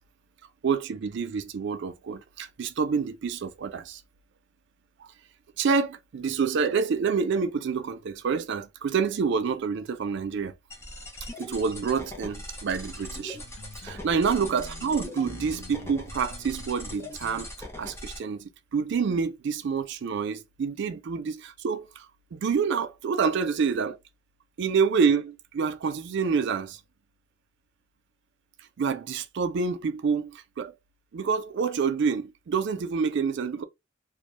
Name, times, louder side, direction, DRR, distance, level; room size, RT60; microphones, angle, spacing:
voice 1, 0.6-4.0 5.6-10.5 11.4-13.4 13.8-22.1 22.3-24.0 24.6-26.8 28.8-30.7 31.1-33.6, right 5 dB, 60° right, 0.4 m, -27 dB
sound 1, 10.7-18.2, left 1 dB, 15° left, 0.5 m, -40 dB
sound 2, 12.3-17.5, left 4 dB, 80° left, 0.5 m, -49 dB
2.3 x 2.1 x 3.0 m
head